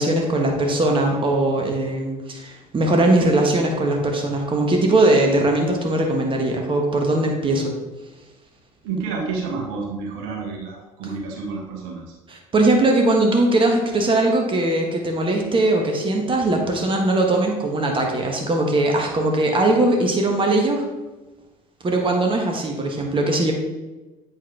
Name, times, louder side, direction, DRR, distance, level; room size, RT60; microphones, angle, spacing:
voice 1, 0.0-7.7 12.3-20.8 21.8-23.5, right 2 dB, 30° right, 2 dB, 1.5 m, -20 dB
voice 2, 8.8-12.0, right 4 dB, 65° right, -1 dB, 1.7 m, -29 dB
8.5 x 5.4 x 3.5 m, 1.1 s
figure-of-eight pair, 60°, 18 cm